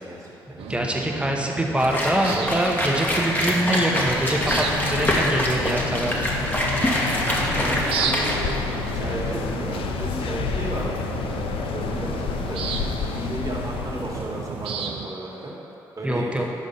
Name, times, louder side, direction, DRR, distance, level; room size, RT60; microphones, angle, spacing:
voice 1, 0.0-0.7 2.3-2.5 7.4-11.0 11.5-12.6 13.0-15.5 16.0-16.5, right 1 dB, 35° right, -4 dB, 1.6 m, -34 dB
sound 1, 0.6-15.1, right 6 dB, 75° right, 0.5 m, -33 dB
voice 2, 0.7-6.3 16.0-16.4, right 1 dB, 10° right, 0 dB, 1.0 m, -24 dB
sound 2, 1.8-8.3, equal, 20° left, 1.3 m, -25 dB
sound 3, 3.8-14.6, left 6 dB, 70° left, 0.4 m, -30 dB
5.4 x 4.9 x 5.7 m, 2.9 s
hypercardioid pair, 40°, 10 cm